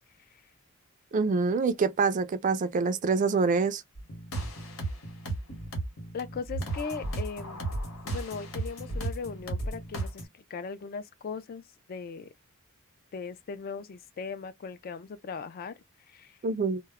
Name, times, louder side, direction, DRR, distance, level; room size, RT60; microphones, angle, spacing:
voice 1, 1.1-3.8 16.4-16.8, right 4 dB, 35° right, 0.3 m, -26 dB
sound 1, 4.0-10.2, right 2 dB, 85° left, 1.1 m, -35 dB
voice 2, 6.1-7.7 8.0-11.6 11.9-12.3 13.1-16.4, left 5 dB, 45° left, 0.3 m, -39 dB
2.2 x 2.0 x 3.4 m
head